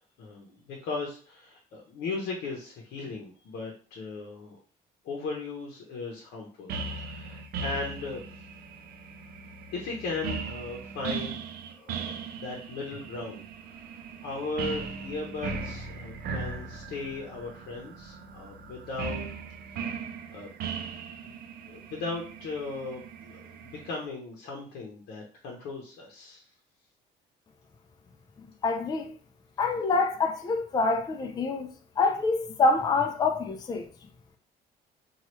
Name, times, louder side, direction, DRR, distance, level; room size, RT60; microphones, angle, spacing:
voice 1, 0.2-4.6 5.0-6.7 7.0-8.2 9.7-11.4 11.8-19.3 19.7-19.8 20.3-20.5 21.2-21.4 21.7-26.4, left 3 dB, 70° left, 0.7 m, -37 dB
sound 1, 6.7-24.0, right 5 dB, 65° right, 0.5 m, -38 dB
voice 2, 28.6-29.1 29.6-31.7 32.0-33.9, left 3 dB, 25° left, 0.4 m, -26 dB
3.0 x 2.3 x 3.0 m
cardioid pair, 110°, 17 cm